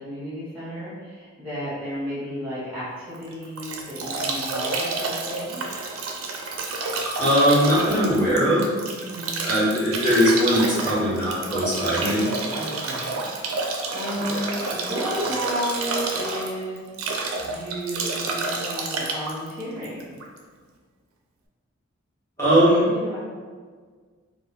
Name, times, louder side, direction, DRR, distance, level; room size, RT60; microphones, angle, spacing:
voice 1, 0.0-5.7 8.9-9.7 12.5-13.2 13.5-16.8 17.4-20.2 22.9-23.2, equal, 5° right, -12 dB, 0.8 m, -33 dB
Bathtub (filling or washing) / Drip / Trickle dribble, 3.1-20.4, right 3 dB, 90° right, 0.4 m, -29 dB
voice 2, 7.2-8.7 9.3-12.3 14.2-14.4 22.4-22.9, equal, 15° left, -10 dB, 0.9 m, -20 dB
2.3 x 2.1 x 3.7 m, 1.6 s
head